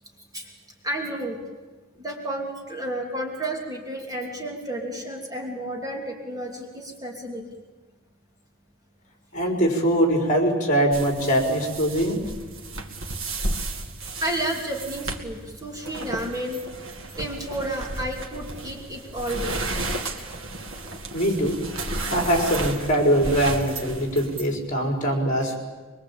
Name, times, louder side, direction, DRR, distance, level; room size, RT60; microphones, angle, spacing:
voice 1, 0.8-1.4 2.0-7.4 14.2-16.9 17.2-19.6, right 1 dB, 20° right, 0 dB, 2.9 m, -31 dB
voice 2, 9.3-12.2 21.1-21.6 22.1-25.6, right 1 dB, 40° left, 2 dB, 4.7 m, -22 dB
sound 1, 10.9-24.6, right 2 dB, 70° right, 2.2 m, -33 dB
23.5 x 23.0 x 8.7 m, 1.3 s
head